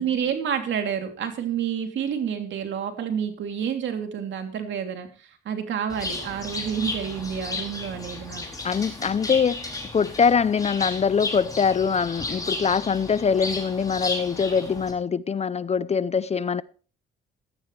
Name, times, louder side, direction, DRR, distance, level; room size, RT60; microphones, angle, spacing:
voice 1, 0.0-8.4, right 8 dB, 70° right, 3.1 m, -29 dB
Bird, 5.9-14.9, left 2 dB, 20° left, 4.7 m, -34 dB
voice 2, 8.6-16.6, left 6 dB, 35° left, 0.6 m, -23 dB
17.0 x 13.0 x 3.3 m
cardioid pair, 90°, 20 cm